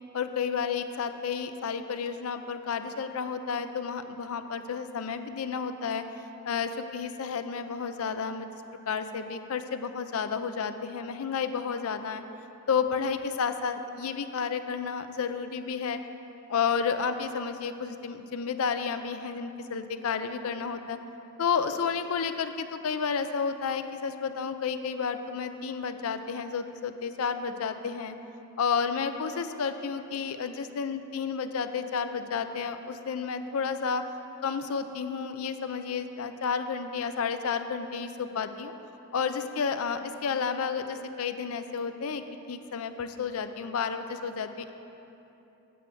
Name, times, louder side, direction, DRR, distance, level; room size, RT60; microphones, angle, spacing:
voice 1, 0.1-6.0 6.4-8.5 8.9-12.2 12.7-16.0 16.5-21.0 21.4-28.1 28.6-34.0 34.4-38.7 39.1-44.7, left 6 dB, 80° left, 9 dB, 0.5 m, -31 dB
8.9 x 4.5 x 7.5 m, 3.0 s
head